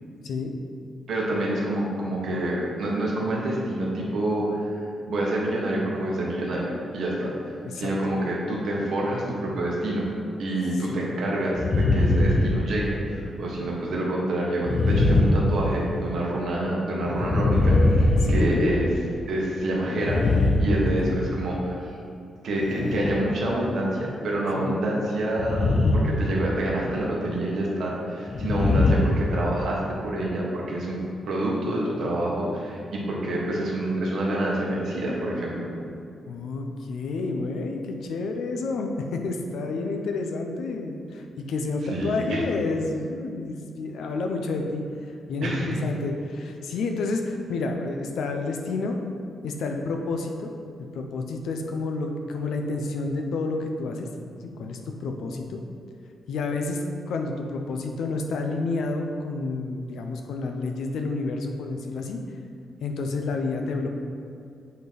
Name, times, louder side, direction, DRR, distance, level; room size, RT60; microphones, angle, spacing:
voice 1, 1.1-4.8 5.1-10.1 10.4-18.9 19.3-20.2 20.6-21.9 22.4-31.0 31.3-35.7 41.9-42.4 45.4-45.8, right 1 dB, 55° right, -4 dB, 1.6 m, -27 dB
sound 1, 11.5-13.2 14.6-16.1 17.0-19.2 19.9-21.4 22.6-23.3 25.4-26.3 26.6-26.9 28.3-29.8, left 2 dB, 35° left, 0.5 m, -22 dB
voice 2, 18.2-18.8 20.8-21.2 24.6-24.8 36.3-44.8 45.3-49.0 49.4-50.5 50.9-54.1 54.4-55.6 56.3-62.2 62.8-63.9, left 3 dB, 75° left, 3 dB, 0.7 m, -29 dB
8.3 x 4.5 x 4.1 m, 2.4 s
wide cardioid pair, 175°, 0 cm